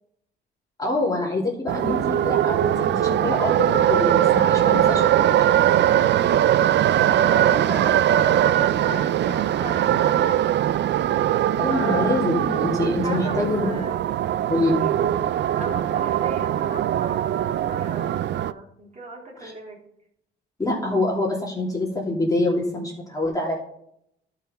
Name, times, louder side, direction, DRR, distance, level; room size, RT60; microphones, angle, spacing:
voice 1, 0.8-5.5 11.6-13.8 14.5-14.8 19.4-19.5 20.6-23.6, left 2 dB, 20° left, -4 dB, 3.0 m, -25 dB
sound 1, 1.7-18.5, right 11 dB, 60° right, 0.5 m, -21 dB
voice 2, 7.0-10.3 11.7-12.4 12.8-14.0 14.8-15.1 15.6-19.8, right 1 dB, 35° right, -2 dB, 3.5 m, -36 dB
11.5 x 5.7 x 5.3 m, 0.74 s
cardioid pair, 90°, 20 cm